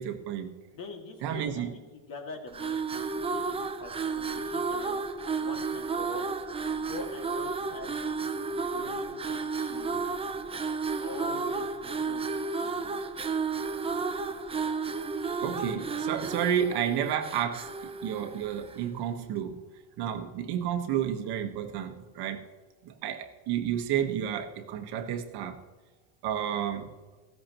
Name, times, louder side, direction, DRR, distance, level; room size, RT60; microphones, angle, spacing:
voice 1, 0.0-0.6 1.2-1.7 15.4-19.6 20.0-22.5 22.8-25.6 26.2-26.9, right 9 dB, 50° right, 7 dB, 1.4 m, -31 dB
voice 2, 0.7-5.0 5.4-6.3 6.6-8.2 8.6-10.1 11.0-13.0 21.0-21.1, left 3 dB, 40° left, 3 dB, 2.3 m, -45 dB
sound 1, 2.5-18.9, right 4 dB, 10° right, 0.5 m, -32 dB
15.5 x 13.5 x 3.0 m, 1.3 s
supercardioid pair, 125°, 49 cm